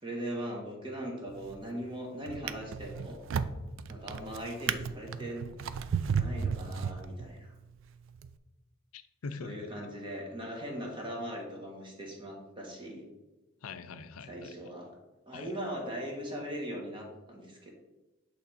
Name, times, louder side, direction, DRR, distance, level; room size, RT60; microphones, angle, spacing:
voice 1, 0.0-3.2 3.9-5.5 6.1-7.5 9.4-13.0 14.2-14.9 15.3-17.8, equal, 25° right, 0 dB, 1.2 m, -40 dB
Drawer open or close, 1.3-1.7 2.3-7.5 8.2-8.3, right 6 dB, 60° right, 0.3 m, -34 dB
voice 2, 8.9-9.7 13.6-14.5 15.3-15.5, left 4 dB, 90° left, 10 dB, 0.5 m, -43 dB
8.2 x 3.3 x 4.2 m, 1.1 s
head